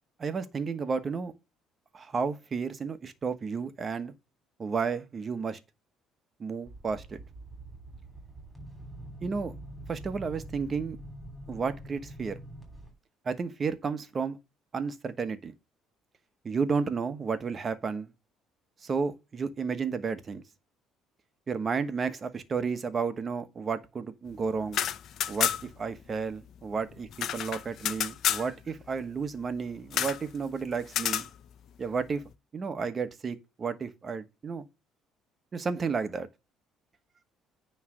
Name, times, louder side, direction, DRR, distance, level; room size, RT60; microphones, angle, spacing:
voice 1, 0.2-1.3 1.9-4.1 4.6-5.6 6.4-7.2 9.2-9.5 9.9-11.0 11.5-12.4 13.2-14.4 14.7-15.5 16.4-18.1 18.8-20.4 21.5-24.8 25.3-27.1 27.3-31.3 31.8-32.2 32.5-34.6 35.5-36.3, right 5 dB, 35° right, 1.1 m, -32 dB
sound 1, 6.6-12.9, right 1 dB, 5° right, 3.2 m, -45 dB
sound 2, 24.6-25.8 26.1-26.2 26.5-28.5 29.9-30.2 30.9-31.3, left 10 dB, 60° left, 0.6 m, -30 dB
9.5 x 3.3 x 6.4 m
cardioid pair, 105°, 0 cm